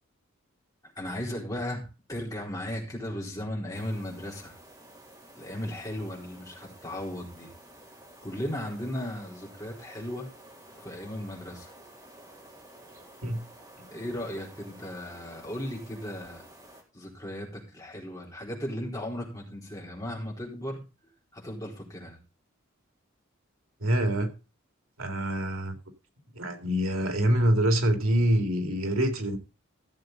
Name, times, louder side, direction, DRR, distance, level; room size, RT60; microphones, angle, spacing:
voice 1, 1.0-4.5 5.3-7.5 8.2-10.3 10.8-11.7 13.9-16.5 16.9-20.8 21.3-22.2, left 1 dB, 15° left, 4.0 m, -36 dB
sound 1, 3.7-16.8, right 1 dB, 20° right, 3.3 m, -52 dB
voice 2, 23.8-24.3 25.0-25.8 26.3-29.4, right 1 dB, 85° right, 2.3 m, -25 dB
15.0 x 7.6 x 3.9 m
head